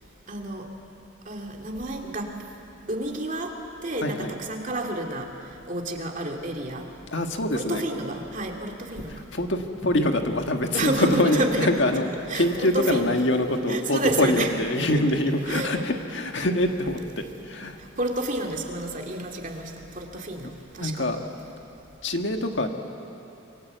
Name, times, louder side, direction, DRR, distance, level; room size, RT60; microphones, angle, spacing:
voice 1, 0.3-0.7 1.3-2.3 2.9-3.5 3.8-5.3 5.7-6.9 7.5-9.1 10.7-11.7 12.3-13.1 13.7-14.5 15.5-15.7 16.4-16.5 17.8-21.0, right 1 dB, 40° right, 2 dB, 2.5 m, -29 dB
voice 2, 4.0-4.4 7.1-7.8 9.1-17.8 20.8-21.2 22.0-22.7, left 1 dB, 60° left, 4 dB, 1.7 m, -25 dB
27.0 x 23.5 x 8.1 m, 2.9 s
head